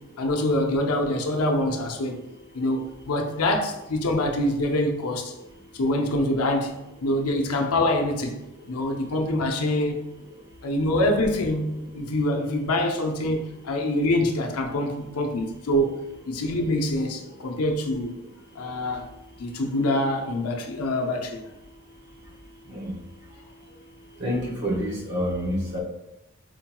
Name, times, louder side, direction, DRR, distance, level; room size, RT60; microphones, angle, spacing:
voice 1, 0.2-2.3 2.5-5.3 5.7-8.4 8.7-10.1 10.6-18.2 18.6-19.1 19.4-21.4, left 1 dB, 85° left, 0.6 m, -25 dB
voice 2, 24.2-25.8, equal, 50° right, 1.0 m, -27 dB
4.3 x 2.9 x 2.2 m
head